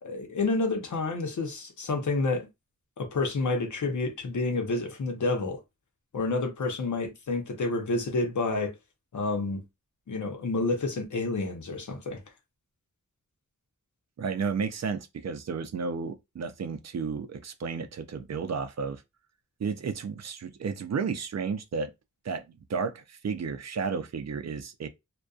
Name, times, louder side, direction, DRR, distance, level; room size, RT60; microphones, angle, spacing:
voice 1, 0.0-2.5 3.0-5.6 6.1-8.7 9.1-9.6 10.1-12.2, left 3 dB, 75° left, 0.7 m, -29 dB
voice 2, 14.2-19.0 19.6-21.9 22.2-24.9, right 5 dB, 60° right, 0.5 m, -32 dB
2.5 x 2.2 x 2.3 m
wide cardioid pair, 85°, 30 cm